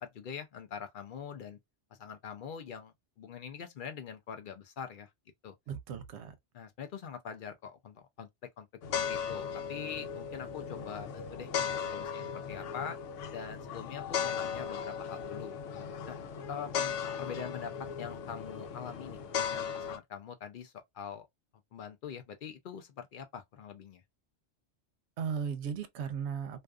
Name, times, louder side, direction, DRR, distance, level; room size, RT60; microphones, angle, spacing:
voice 1, 0.0-1.6 2.0-5.1 5.4-5.5 6.6-8.3 8.6-8.7 8.9-13.0 13.3-15.6 16.1-16.2 16.5-21.3 21.7-24.0, left 7 dB, 60° left, 0.5 m, -43 dB
voice 2, 5.7-6.3 25.2-26.6, right 7 dB, 75° right, 0.8 m, -36 dB
sound 1, 8.8-20.0, left 7 dB, 90° left, 0.9 m, -37 dB
2.5 x 2.3 x 2.2 m
omnidirectional pair, 1.2 m